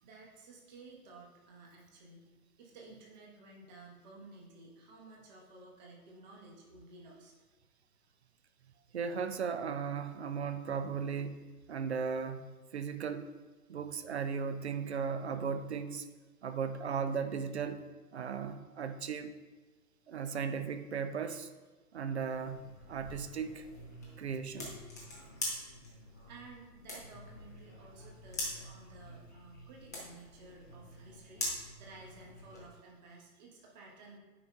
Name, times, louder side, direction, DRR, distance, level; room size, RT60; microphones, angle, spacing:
voice 1, 0.0-2.3 2.6-7.4 26.3-34.2, right 3 dB, 25° right, -1 dB, 1.2 m, -54 dB
voice 2, 8.9-13.3 13.7-16.1 16.4-17.8 18.1-19.3 20.1-21.5 21.9-23.7 24.2-24.8, right 6 dB, 45° right, 9 dB, 0.5 m, -36 dB
sound 1, 22.3-32.7, left 1 dB, 10° left, 0.5 m, -44 dB
9.3 x 5.5 x 2.3 m, 1.3 s
figure-of-eight pair, 125°, 48 cm